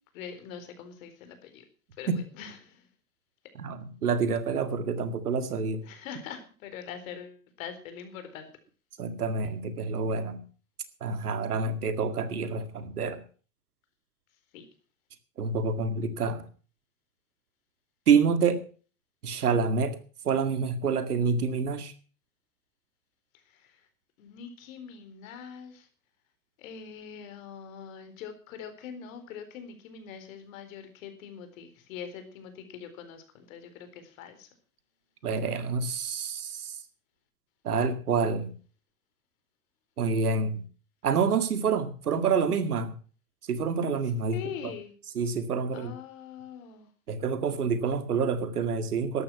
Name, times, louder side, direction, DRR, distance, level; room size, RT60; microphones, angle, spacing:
voice 1, 0.1-1.6 2.0-2.9 5.8-8.5 14.5-14.6 23.3-23.9 24.2-25.9 26.6-34.5 44.3-44.9 45.7-46.9, left 7 dB, 60° left, 8 dB, 4.3 m, -43 dB
voice 2, 3.6-5.9 9.0-10.4 11.0-13.2 15.4-16.5 18.1-18.6 19.2-20.0 20.2-21.9 35.2-36.8 37.6-38.5 40.0-40.6 41.0-43.0 43.5-44.7 45.2-45.9 47.1-49.2, right 5 dB, 80° right, 11 dB, 2.1 m, -27 dB
13.5 x 11.5 x 5.9 m, 0.39 s
hypercardioid pair, 95°, 44 cm